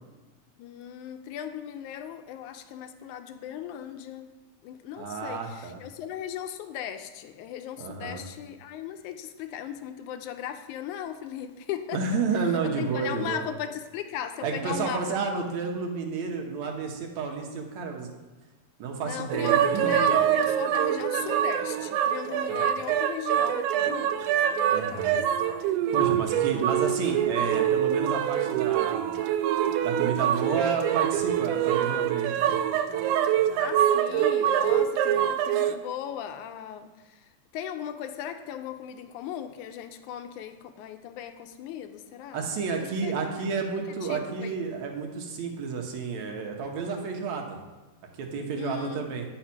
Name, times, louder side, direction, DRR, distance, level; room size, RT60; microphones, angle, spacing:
voice 1, 0.6-4.3 4.6-12.0 12.8-15.5 19.0-25.1 26.3-26.7 33.6-37.3 37.5-42.5 43.0-43.1 44.0-44.6 48.6-49.2, left 9 dB, 85° left, 8 dB, 2.0 m, -37 dB
voice 2, 4.9-5.8 7.8-8.2 11.9-13.4 14.4-18.1 18.8-20.0 22.5-22.7 24.7-25.2 25.9-29.2 29.8-32.6 33.4-33.5 42.3-47.6 48.1-49.2, right 5 dB, 70° right, 2 dB, 2.3 m, -31 dB
sound 1, 19.3-35.7, right 10 dB, 90° right, 2.1 m, -25 dB
9.5 x 5.6 x 5.9 m, 1.2 s
omnidirectional pair, 3.5 m